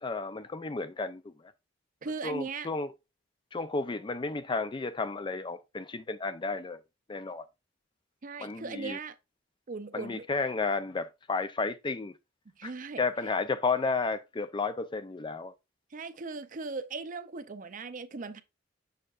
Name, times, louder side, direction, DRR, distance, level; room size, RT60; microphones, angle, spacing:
voice 1, 0.0-1.5 2.2-2.9 3.5-6.8 7.1-7.4 8.4-9.0 9.9-12.2 12.6-12.7 13.0-15.5, left 4 dB, 25° left, 0.4 m, -32 dB
voice 2, 2.0-2.7 8.2-9.2 9.7-10.3 12.6-13.0 15.9-18.4, right 4 dB, 45° right, 0.6 m, -38 dB
6.5 x 6.5 x 2.4 m
head